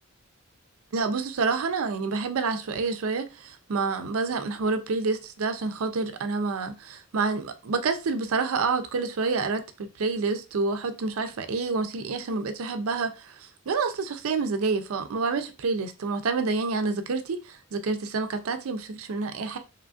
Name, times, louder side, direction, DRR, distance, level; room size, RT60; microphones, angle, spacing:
voice 1, 0.9-19.6, right 4 dB, 80° right, 0.5 m, -28 dB
3.0 x 2.4 x 2.5 m
head